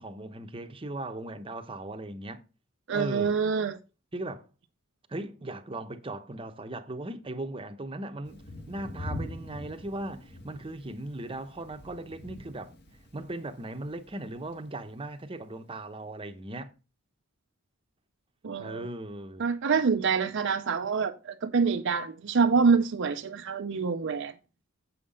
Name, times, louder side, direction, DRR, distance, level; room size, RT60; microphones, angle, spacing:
voice 1, 0.0-2.4 2.9-3.4 4.1-4.5 5.1-12.7 13.1-16.7 18.6-19.5, right 2 dB, 25° right, 0.8 m, -38 dB
voice 2, 2.9-3.8 18.4-18.9 19.4-24.3, right 5 dB, 60° right, 0.6 m, -26 dB
Thunder, 8.2-15.0, left 1 dB, 55° left, 1.8 m, -44 dB
7.8 x 5.6 x 5.1 m
head